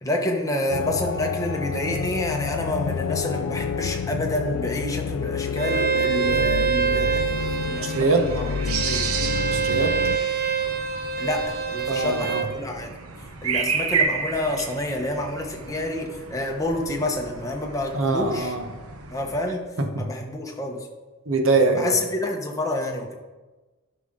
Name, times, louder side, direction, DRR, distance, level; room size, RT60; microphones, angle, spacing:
voice 1, 0.0-7.3 7.6-9.1 11.2-12.9 13.4-18.5 19.1-19.7 20.0-20.9 21.7-23.1, left 1 dB, 15° left, 1 dB, 1.0 m, -28 dB
sound 1, 0.7-10.2, left 6 dB, 85° left, 0.3 m, -29 dB
Bowed string instrument, 5.6-12.5, right 6 dB, 45° right, 0.7 m, -26 dB
sound 2, 7.3-19.5, right 5 dB, 85° right, 0.8 m, -32 dB
voice 2, 7.9-8.3 9.5-9.9 11.9-12.4 17.9-18.7 19.9-20.1 21.3-21.9, right 3 dB, 65° right, 5 dB, 1.0 m, -22 dB
11.5 x 5.8 x 3.8 m, 1.2 s
head